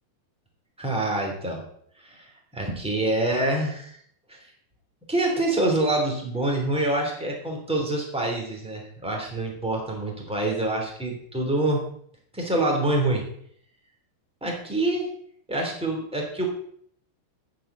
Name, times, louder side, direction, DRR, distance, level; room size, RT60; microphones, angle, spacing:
voice 1, 0.8-1.6 2.0-2.3 2.5-4.0 4.3-4.5 5.1-11.9 12.3-13.3 14.4-15.1 15.5-16.5, right 2 dB, ahead, 0 dB, 2.0 m, -26 dB
9.2 x 7.6 x 8.0 m, 0.63 s
omnidirectional pair, 4.8 m